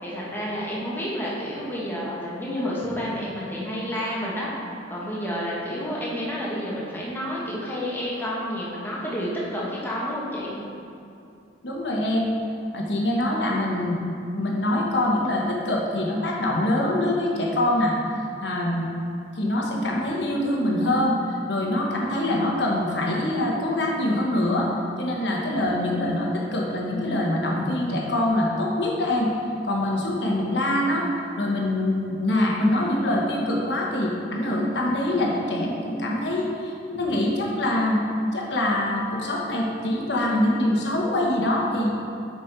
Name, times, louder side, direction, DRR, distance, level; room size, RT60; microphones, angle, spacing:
voice 1, 0.0-4.5 4.9-10.5, equal, 10° left, -6 dB, 1.4 m, -30 dB
voice 2, 11.6-12.3 12.7-14.0 14.3-18.0 18.4-18.9 19.3-24.7 25.0-29.3 29.6-31.1 31.4-41.9, left 1 dB, 65° left, -2 dB, 1.2 m, -24 dB
6.6 x 5.2 x 4.5 m, 2.5 s
head